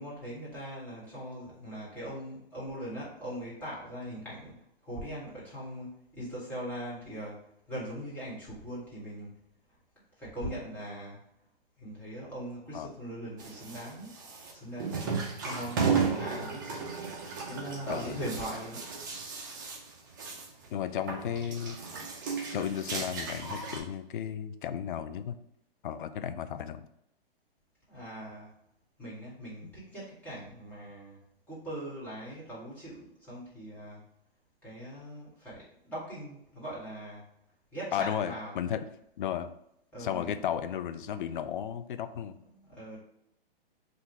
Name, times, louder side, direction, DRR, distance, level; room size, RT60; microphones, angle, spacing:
voice 1, 0.0-4.5 4.8-9.4 9.7-9.8 10.2-11.2 11.8-14.1 14.5-15.0 15.4-17.0 17.4-18.8 27.9-28.5 29.0-31.2 31.5-34.1 34.6-37.3 37.7-38.5 39.9-40.4 42.4-43.0, equal, 5° left, -9 dB, 1.6 m, -40 dB
sound 1, 13.4-20.7 20.9-23.8, right 5 dB, 20° right, 0.3 m, -34 dB
voice 2, 20.7-21.8 22.5-25.4 25.8-26.8 29.6-29.7 37.9-38.8 39.2-39.5 40.0-42.4, left 9 dB, 55° left, 11 dB, 0.4 m, -34 dB
3.7 x 2.5 x 4.5 m, 0.77 s
hypercardioid pair, 145°, 30 cm